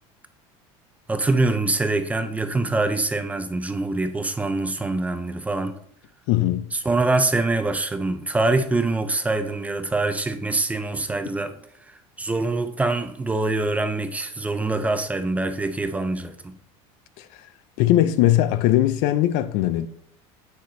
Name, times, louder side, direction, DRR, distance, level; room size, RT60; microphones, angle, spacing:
voice 1, 1.1-5.8 6.7-11.6 11.9-16.5, right 2 dB, 10° right, 0.4 m, -24 dB
voice 2, 6.3-6.7 17.2-17.3 17.8-19.9, left 14 dB, 65° left, 0.5 m, -20 dB
7.9 x 6.5 x 2.7 m
cardioid pair, 135°, 14 cm